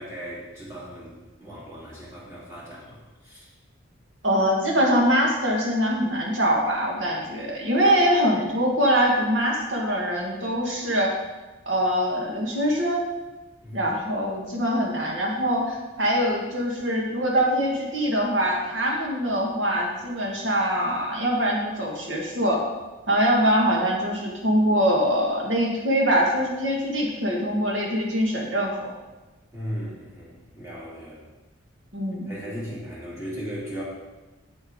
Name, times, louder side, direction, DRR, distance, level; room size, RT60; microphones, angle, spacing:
voice 1, 0.0-3.5 13.6-13.9 29.5-31.2 32.3-33.8, equal, 15° right, -8 dB, 2.8 m, -37 dB
voice 2, 4.2-11.1 11.7-13.0 13.7-22.6 23.1-28.9 31.9-32.3, equal, 65° right, -1 dB, 1.9 m, -23 dB
8.9 x 8.0 x 3.8 m, 1.1 s
head